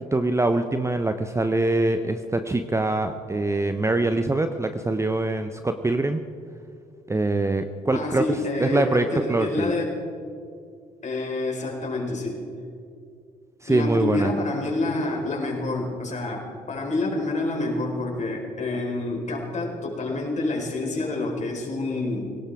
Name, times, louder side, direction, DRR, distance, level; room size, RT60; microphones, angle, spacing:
voice 1, 0.1-6.2 7.1-8.2 8.6-9.7 13.6-14.3, right 2 dB, 15° right, 8 dB, 0.8 m, -24 dB
voice 2, 7.9-10.0 11.0-12.4 13.7-22.3, left 2 dB, 35° left, 0 dB, 4.5 m, -28 dB
21.5 x 18.0 x 3.6 m, 2.4 s
figure-of-eight pair, 50°, 20 cm